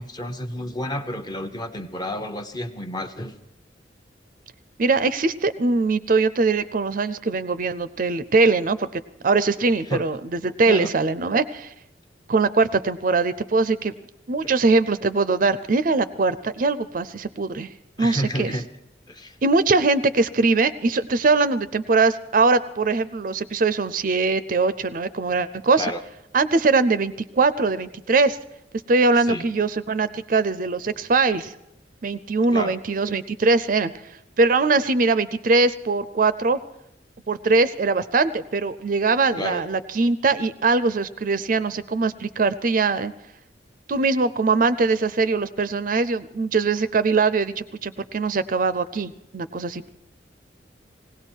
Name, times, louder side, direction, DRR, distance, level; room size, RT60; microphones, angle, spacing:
voice 1, 0.0-3.4 9.9-10.0 10.6-10.9 14.4-14.5 18.0-18.7 19.1-19.4 25.8-26.0 29.2-29.5 32.5-32.8 39.4-39.6, equal, 25° left, 7 dB, 0.8 m, -30 dB
voice 2, 4.8-11.7 12.3-13.9 14.3-17.7 18.0-18.5 19.4-25.9 26.3-28.4 28.9-31.5 32.0-33.9 34.4-36.6 37.3-43.1 43.9-49.9, right 3 dB, 50° right, 14 dB, 0.5 m, -21 dB
19.0 x 17.0 x 4.5 m, 0.84 s
head